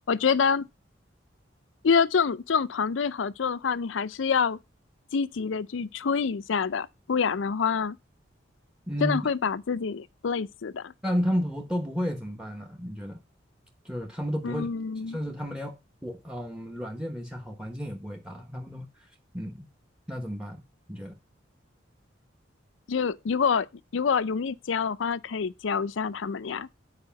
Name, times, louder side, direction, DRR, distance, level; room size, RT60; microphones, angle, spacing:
voice 1, 0.1-0.7 1.8-4.6 5.1-8.0 9.0-10.9 14.4-15.2 22.9-23.7 23.9-26.7, left 6 dB, 75° left, 0.5 m, -26 dB
voice 2, 8.9-9.2 11.0-13.2 13.8-14.7 15.1-19.7 20.1-20.6 20.9-21.2, equal, 5° right, 1.0 m, -32 dB
9.7 x 4.9 x 5.7 m
head